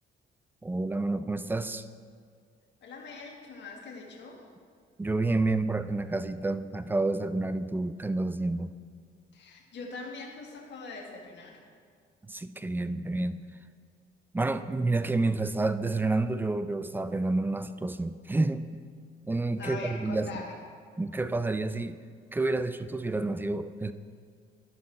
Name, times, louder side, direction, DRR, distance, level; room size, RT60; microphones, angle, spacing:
voice 1, 0.6-1.8 5.0-8.7 12.3-13.4 14.3-18.7 19.2-20.4 21.0-22.0 22.3-23.9, right 2 dB, 10° right, 12 dB, 0.3 m, -29 dB
voice 2, 2.8-4.4 9.3-11.6 19.6-20.6, left 3 dB, 65° left, 0 dB, 1.6 m, -42 dB
11.0 x 5.6 x 4.3 m, 2.1 s
cardioid pair, 90°, 20 cm